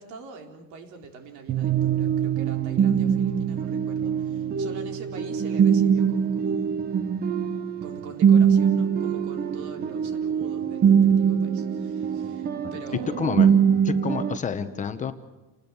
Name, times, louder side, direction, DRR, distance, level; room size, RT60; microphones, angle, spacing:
voice 1, 0.0-6.8 7.8-13.2, right 5 dB, 65° right, 4 dB, 3.9 m, -44 dB
sound 1, 1.5-14.4, right 7 dB, 30° right, 0.9 m, -23 dB
voice 2, 13.2-13.5 13.8-15.1, left 6 dB, 25° left, 8 dB, 1.0 m, -29 dB
29.0 x 20.0 x 7.2 m, 1.1 s
cardioid pair, 170°, 31 cm